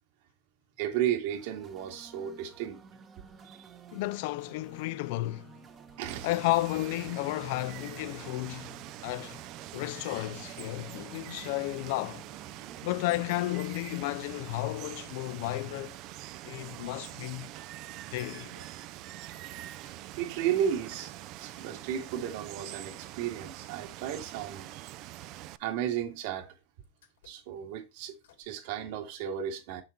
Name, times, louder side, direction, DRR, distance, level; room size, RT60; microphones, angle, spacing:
voice 1, 0.8-2.8 3.4-3.7 6.0-6.3 20.2-24.9 25.6-26.6 27.2-29.8, right 10 dB, 55° right, 1.9 m, -34 dB
sound 1, 1.3-13.6, right 6 dB, 20° right, 1.0 m, -53 dB
voice 2, 3.9-5.5 6.2-9.4 9.7-12.2 12.8-16.0 16.4-17.5 18.1-18.5 19.8-19.9, left 19 dB, 55° left, 0.3 m, -33 dB
Water, 6.1-25.6, right 15 dB, 40° right, 0.4 m, -44 dB
sound 2, 10.0-10.2 11.1-11.4 12.3-12.7 14.3-14.8 16.1-16.2 16.5-16.9 17.4-17.5 18.3-18.7 20.2-20.7 21.2-21.3 23.2-23.6 25.3-26.0 26.8-27.6 28.1-28.5, left 3 dB, 80° left, 2.9 m, -58 dB
6.7 x 5.7 x 4.3 m
supercardioid pair, 150°, 0 cm